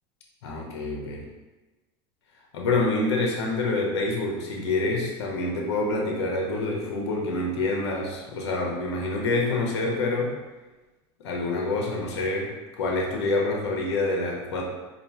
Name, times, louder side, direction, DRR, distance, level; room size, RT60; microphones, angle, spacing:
voice 1, 0.4-1.2 2.5-10.3 11.2-14.6, left 2 dB, 85° left, -1 dB, 1.0 m, -27 dB
4.1 x 2.5 x 3.5 m, 1.2 s
supercardioid pair, 100°, 14 cm